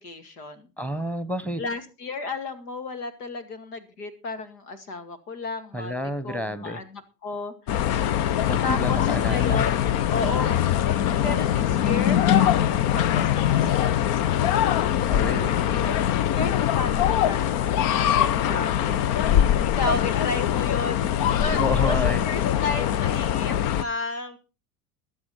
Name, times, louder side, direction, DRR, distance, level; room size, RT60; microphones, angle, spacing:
voice 1, 0.0-0.7 1.6-8.0 8.6-9.8 10.1-10.6 10.9-14.8 15.6-16.0 16.3-19.0 19.4-24.4, left 3 dB, 75° left, 10 dB, 2.3 m, -33 dB
voice 2, 0.8-1.6 5.7-6.8 8.5-9.6 15.1-15.6 21.6-22.2, left 1 dB, 5° left, 15 dB, 1.3 m, -29 dB
sound 1, 7.7-23.8, left 10 dB, 50° left, 0.8 m, -22 dB
20.5 x 7.7 x 4.2 m, 0.32 s
hypercardioid pair, 75°, 47 cm